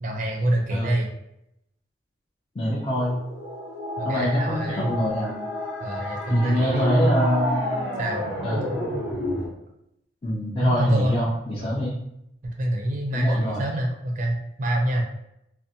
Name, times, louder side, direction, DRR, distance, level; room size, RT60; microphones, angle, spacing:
voice 1, 0.0-1.1 4.0-4.9 5.8-7.4 8.0-8.3 10.6-11.2 11.6-11.9 12.4-15.0, right 1 dB, 40° right, 1 dB, 0.4 m, -25 dB
voice 2, 2.6-3.2 4.0-5.4 6.3-7.7 8.4-8.8 10.2-12.0 13.1-13.6, equal, 30° left, -7 dB, 0.5 m, -25 dB
sound 1, 2.9-9.5, left 1 dB, 75° left, 1.1 m, -31 dB
2.5 x 2.1 x 2.7 m, 0.79 s
head